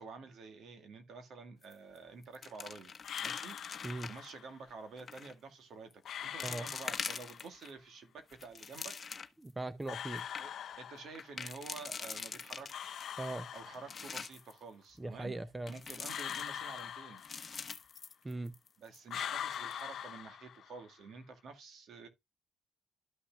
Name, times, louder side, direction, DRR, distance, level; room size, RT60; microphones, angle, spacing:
voice 1, 0.0-5.9 6.2-8.9 10.4-10.5 10.8-13.0 13.5-15.3 15.7-17.2 18.3-18.4 18.8-22.1, right 4 dB, 70° right, 1.9 m, -50 dB
sound 1, 1.6-2.0 2.2-4.3 5.0-5.3 5.9-6.0 6.4-7.7 8.2-9.5 9.9-10.0 10.2-10.4 11.1-13.1 13.5-14.5 15.7-16.8 17.2-18.7 18.9-19.0 19.5-19.8, left 5 dB, 40° left, 0.9 m, -44 dB
sound 2, 3.0-4.5 6.0-7.5 9.9-11.4 12.7-14.3 16.1-17.8 19.1-20.9, left 9 dB, 65° left, 0.5 m, -43 dB
voice 2, 9.4-10.3 13.2-13.5 15.0-15.7 18.2-18.5, right 2 dB, 15° right, 0.6 m, -39 dB
12.5 x 5.8 x 2.4 m
cardioid pair, 90°, 0 cm